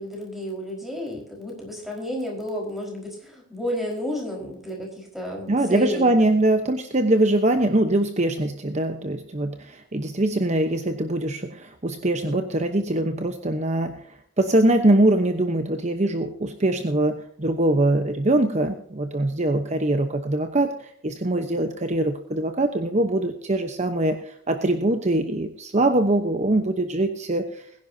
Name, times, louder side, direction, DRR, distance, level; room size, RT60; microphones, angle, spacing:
voice 1, 0.0-6.1, left 1 dB, ahead, -1 dB, 4.7 m, -31 dB
voice 2, 5.5-14.0 14.4-27.7, right 1 dB, 35° right, 6 dB, 1.0 m, -23 dB
21.5 x 10.5 x 2.8 m, 0.66 s
head